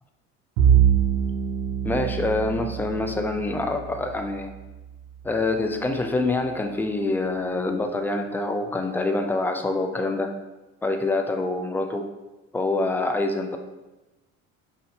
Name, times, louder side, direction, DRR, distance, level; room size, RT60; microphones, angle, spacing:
Bowed string instrument, 0.6-5.1, right 9 dB, 75° right, 0.8 m, -24 dB
voice 1, 1.8-4.5 5.2-10.3 10.8-12.1 12.5-13.6, left 2 dB, 5° left, 6 dB, 0.3 m, -26 dB
6.1 x 2.6 x 2.6 m, 1.1 s
hypercardioid pair, 65°, 38 cm